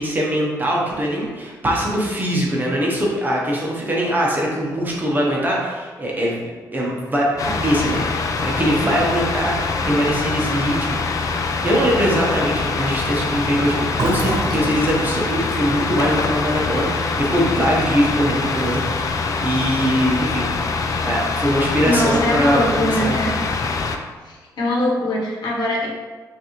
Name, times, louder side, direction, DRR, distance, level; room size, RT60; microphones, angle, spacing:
voice 1, 0.0-6.4 6.7-8.1 8.4-9.6 9.8-11.3 11.6-20.5 21.0-23.2, equal, 25° right, -3 dB, 0.9 m, -22 dB
sound 1, 7.4-24.0, left 4 dB, 50° left, 0.4 m, -24 dB
Fill (with liquid), 13.9-17.6 17.9-18.1 18.4-19.0, right 2 dB, 70° right, 1.0 m, -30 dB
voice 2, 21.8-23.4 24.2-25.9, left 1 dB, 75° left, -3 dB, 1.1 m, -22 dB
5.9 x 2.7 x 3.0 m, 1.4 s
wide cardioid pair, 130°, 7 cm